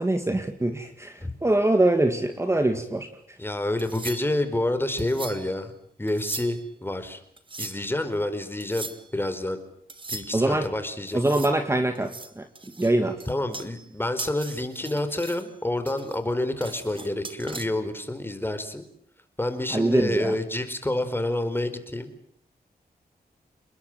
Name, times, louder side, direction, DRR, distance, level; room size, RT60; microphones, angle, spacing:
voice 1, 0.0-1.1 1.4-3.1 10.3-10.7 11.1-12.5 12.8-13.2 19.7-20.3, right 2 dB, 15° right, 7 dB, 2.2 m, -23 dB
voice 2, 3.4-5.7 6.0-7.2 7.6-8.9 9.1-9.6 10.1-11.2 13.3-18.8 19.4-22.1, left 1 dB, 15° left, 9 dB, 4.4 m, -28 dB
sound 1, 3.8-4.5 5.0-5.6 6.1-6.7 7.4-8.0 8.6-9.1 9.9-10.7 11.1-11.6 12.0-13.9 14.2-15.5 15.9-17.7, right 3 dB, 30° right, 2.6 m, -39 dB
29.5 x 20.5 x 9.1 m, 0.64 s
wide cardioid pair, 110°, 16 cm